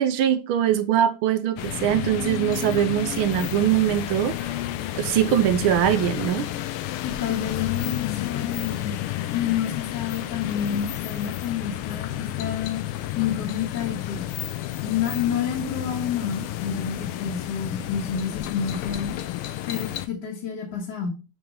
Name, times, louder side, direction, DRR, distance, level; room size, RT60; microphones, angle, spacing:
voice 1, 0.0-4.3 5.0-6.5, right 10 dB, 80° right, 11 dB, 1.4 m, -22 dB
sound 1, 1.6-20.1, left 14 dB, 85° left, 1.5 m, -31 dB
voice 2, 7.0-8.9 9.3-12.8 13.1-14.2 14.8-19.2 19.7-21.1, left 8 dB, 55° left, -2 dB, 1.8 m, -29 dB
7.1 x 4.8 x 3.6 m, 0.31 s
omnidirectional pair, 2.4 m